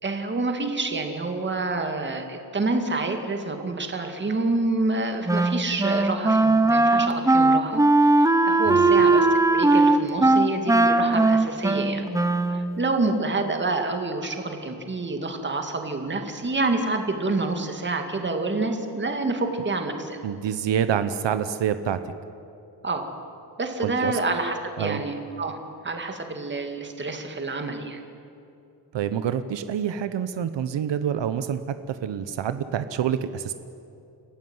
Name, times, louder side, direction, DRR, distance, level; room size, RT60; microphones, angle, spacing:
voice 1, 0.0-12.1 12.5-20.2 22.8-23.1 23.6-25.6 25.8-28.0, right 3 dB, 25° right, 5 dB, 2.2 m, -28 dB
Wind instrument woodwind instrument, 5.3-12.7, right 2 dB, 10° right, 0.7 m, -19 dB
voice 2, 20.2-22.1 23.8-24.2 24.8-25.0 28.9-33.5, right 9 dB, 85° right, 11 dB, 1.0 m, -27 dB
30.0 x 14.5 x 9.6 m, 2.7 s
wide cardioid pair, 175°, 42 cm